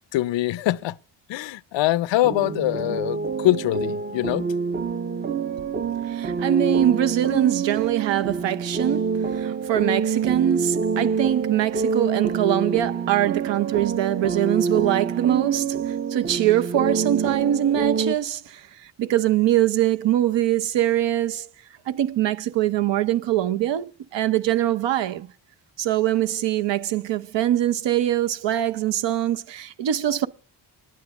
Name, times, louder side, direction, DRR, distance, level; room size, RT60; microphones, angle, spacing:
voice 1, 0.1-0.9 1.3-4.5, left 15 dB, 90° left, 0.6 m, -23 dB
sound 1, 2.2-18.1, right 5 dB, 25° right, 0.5 m, -26 dB
voice 2, 6.1-21.5 21.9-25.3 25.8-30.3, right 12 dB, 80° right, 0.8 m, -23 dB
10.5 x 9.7 x 7.1 m
cardioid pair, 120°, 43 cm